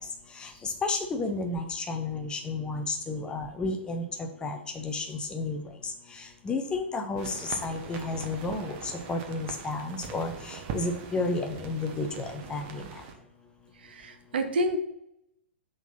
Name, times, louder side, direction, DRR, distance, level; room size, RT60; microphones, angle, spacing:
voice 1, 0.8-4.0 4.4-5.6 6.5-7.3 7.6-8.7 9.1-10.3 10.7-12.8, left 3 dB, 15° left, 5 dB, 0.8 m, -31 dB
sound 1, 7.2-13.1, right 5 dB, 35° right, 1.0 m, -41 dB
voice 2, 13.8-14.8, right 1 dB, 55° right, 6 dB, 1.1 m, -29 dB
5.9 x 3.9 x 5.7 m, 0.76 s
figure-of-eight pair, 110°, 6 cm